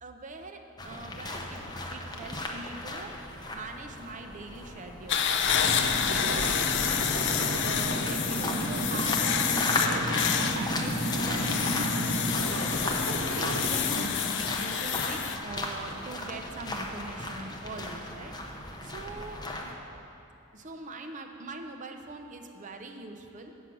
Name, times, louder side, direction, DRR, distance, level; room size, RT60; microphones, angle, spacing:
voice 1, 0.0-1.6 1.9-3.1 3.5-5.2 5.6-5.8 6.1-19.4 20.5-23.5, right 3 dB, 35° right, 4 dB, 0.6 m, -42 dB
sound 1, 0.8-19.7, left 1 dB, 20° left, 0.7 m, -36 dB
sound 2, 5.1-15.4, left 8 dB, 55° left, 0.5 m, -29 dB
sound 3, 5.3-14.3, right 1 dB, 65° right, 1.2 m, -32 dB
8.6 x 7.2 x 6.1 m, 2.8 s
head